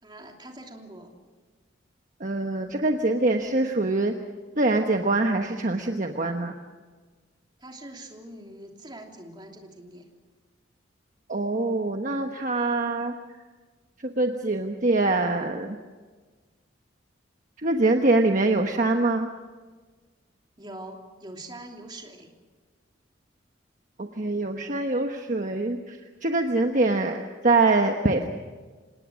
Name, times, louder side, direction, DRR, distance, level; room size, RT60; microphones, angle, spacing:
voice 1, 0.0-1.1 7.6-10.1 20.6-22.3, right 1 dB, 25° right, 2 dB, 3.0 m, -43 dB
voice 2, 2.2-4.1 4.6-6.5 11.3-13.1 14.0-15.8 17.6-19.3 24.0-28.3, right 2 dB, 45° right, 4 dB, 1.2 m, -24 dB
26.5 x 19.5 x 6.3 m, 1.4 s
head